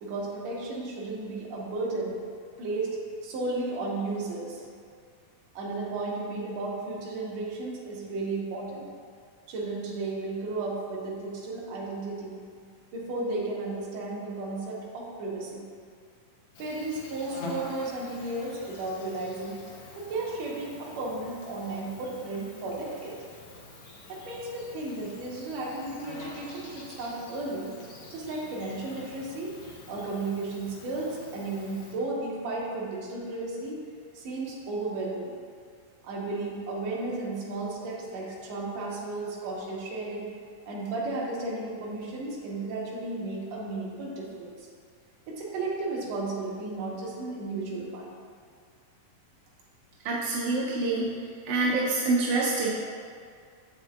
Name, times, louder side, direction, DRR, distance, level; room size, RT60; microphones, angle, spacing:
voice 1, 0.0-2.2 2.6-4.7 5.5-8.9 9.5-12.4 12.9-15.6 16.6-19.6 20.0-23.2 24.1-27.7 28.1-29.5 29.9-33.8 34.1-35.4 36.0-40.3 40.7-44.7 45.3-48.1, right 2 dB, 65° right, -3 dB, 1.9 m, -34 dB
Insect, 16.5-31.9, left 2 dB, 80° left, 1.3 m, -46 dB
voice 2, 50.1-51.1 51.5-52.7, right 3 dB, 80° right, -4 dB, 1.7 m, -26 dB
7.4 x 7.1 x 2.3 m, 2.2 s
omnidirectional pair, 4.0 m